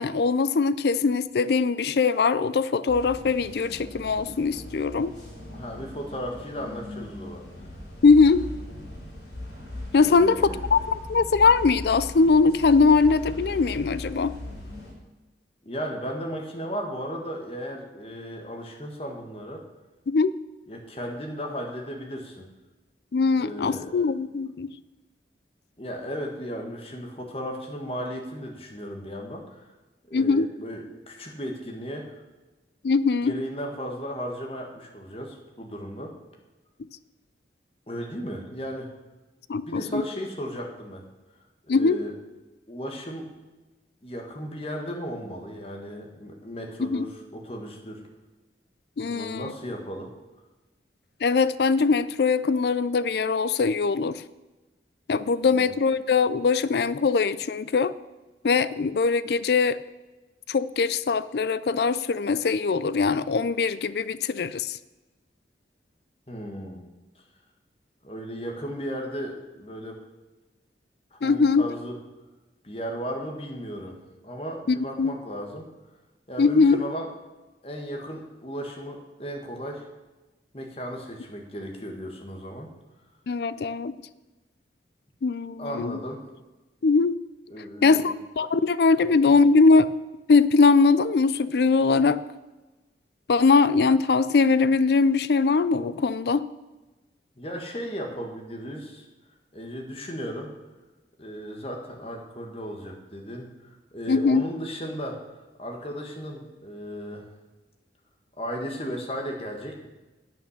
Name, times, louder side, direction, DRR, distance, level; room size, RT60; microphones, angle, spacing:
voice 1, 0.0-5.1 8.0-8.4 9.9-10.4 10.7-14.3 20.1-20.3 23.1-24.7 30.1-30.5 32.8-33.4 39.5-40.0 41.7-42.0 46.8-47.1 49.0-49.5 51.2-54.2 55.1-57.9 58.4-59.8 60.5-64.8 71.2-71.7 74.7-75.2 76.4-76.8 83.3-84.0 85.2-86.0 86.8-87.1 87.8-89.9 90.3-92.2 93.3-96.5 104.1-104.5, left 4 dB, 65° left, 16 dB, 0.4 m, -21 dB
sound 1, 2.9-14.9, left 1 dB, 85° left, 3.9 m, -39 dB
voice 2, 5.5-7.4 10.0-10.6 15.6-19.6 20.7-22.5 23.4-24.0 25.8-29.6 30.1-32.2 33.2-36.2 37.9-38.9 39.7-41.0 41.7-42.1 42.7-43.4 44.0-48.0 49.0-50.1 55.4-55.7 66.3-66.9 68.0-70.0 71.1-72.0 72.6-75.7 76.3-77.1 77.6-79.8 80.5-82.7 85.6-86.2 87.5-88.2 97.4-99.1 99.5-100.5 101.2-105.2 105.6-107.3 108.4-109.9, equal, 30° left, 2 dB, 1.6 m, -35 dB
9.2 x 8.4 x 6.6 m, 1.1 s
head